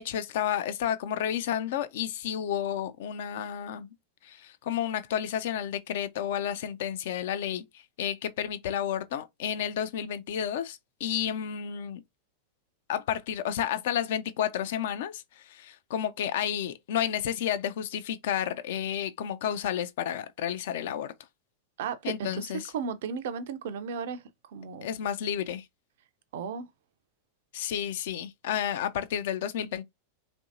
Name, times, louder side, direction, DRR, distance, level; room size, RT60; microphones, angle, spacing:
voice 1, 0.0-3.9 4.2-12.0 12.9-21.1 22.0-22.7 24.8-25.7 27.5-29.8, left 9 dB, 55° left, 0.4 m, -31 dB
voice 2, 21.8-24.9 26.3-26.7, right 6 dB, 55° right, 0.4 m, -35 dB
3.0 x 2.6 x 2.4 m
figure-of-eight pair, 90°, 0 cm